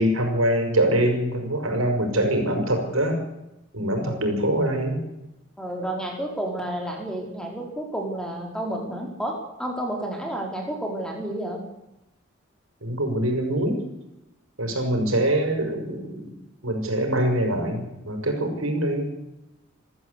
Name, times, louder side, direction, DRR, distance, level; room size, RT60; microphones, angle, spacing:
voice 1, 0.0-3.2 3.7-5.0 12.8-13.8 14.6-16.3 16.6-19.1, right 1 dB, 85° right, 4 dB, 5.9 m, -24 dB
voice 2, 5.6-11.6, right 1 dB, 5° left, 1 dB, 4.5 m, -31 dB
27.5 x 14.0 x 8.4 m, 0.94 s
head